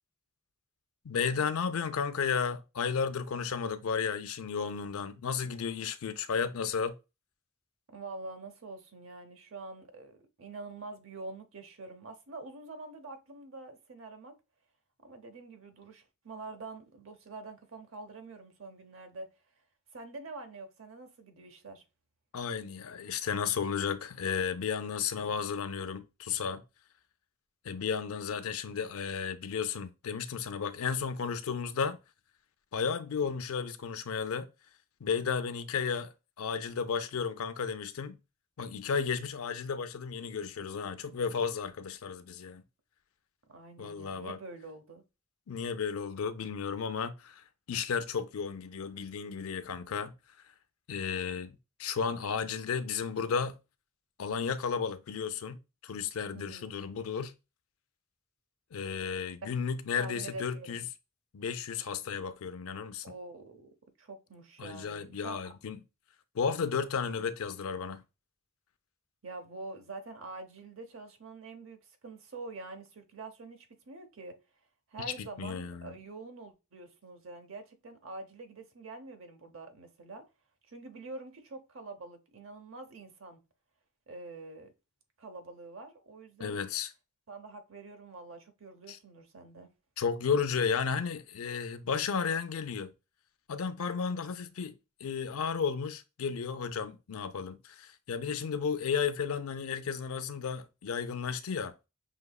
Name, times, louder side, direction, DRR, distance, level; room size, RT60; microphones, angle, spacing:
voice 1, 1.0-6.9 22.3-26.6 27.6-32.0 32.7-34.5 35.0-38.2 38.6-42.6 43.8-44.4 45.5-50.1 50.9-53.6 54.2-57.3 58.7-60.8 61.3-63.0 64.6-65.8 66.3-68.0 75.2-75.9 86.4-86.9 88.9-89.0 90.0-92.9 93.5-101.7, left 6 dB, 85° left, 0.5 m, -33 dB
voice 2, 7.9-14.4 15.0-19.3 19.9-21.8 43.5-45.0 56.3-56.7 60.0-60.8 63.0-65.5 69.2-74.4 74.9-80.2 80.7-83.4 84.1-84.7 85.2-86.6 87.3-89.7, right 3 dB, 65° right, 0.8 m, -46 dB
6.0 x 2.9 x 2.3 m
head